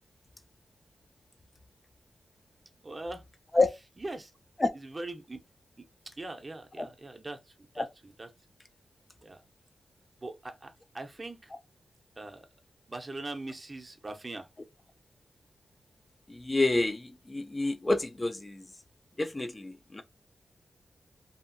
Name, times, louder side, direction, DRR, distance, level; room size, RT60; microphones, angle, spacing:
voice 1, 2.8-3.2 4.0-4.3 4.8-5.4 6.1-7.9 8.2-8.3 9.2-9.4 10.2-11.5 12.2-12.5 12.9-14.5, right 2 dB, 30° right, 0.6 m, -41 dB
voice 2, 16.3-18.7 19.2-20.0, left 2 dB, 25° left, 0.3 m, -28 dB
2.7 x 2.5 x 2.5 m
wide cardioid pair, 90°, 0 cm